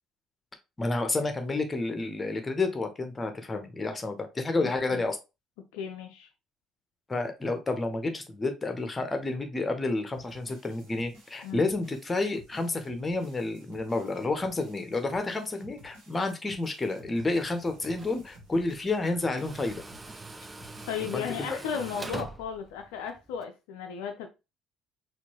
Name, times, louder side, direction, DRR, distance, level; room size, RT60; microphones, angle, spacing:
voice 1, 0.8-5.2 7.1-19.8 21.0-21.6, left 2 dB, 20° left, 0.9 m, -30 dB
voice 2, 4.6-5.0 5.6-6.3 11.4-11.6 20.8-24.3, left 7 dB, 65° left, 0.4 m, -35 dB
sound 1, 10.1-21.1, equal, 65° right, 1.5 m, -54 dB
Tools, 17.2-23.4, right 2 dB, 15° right, 0.4 m, -44 dB
4.3 x 2.6 x 2.9 m
figure-of-eight pair, 50°, 0 cm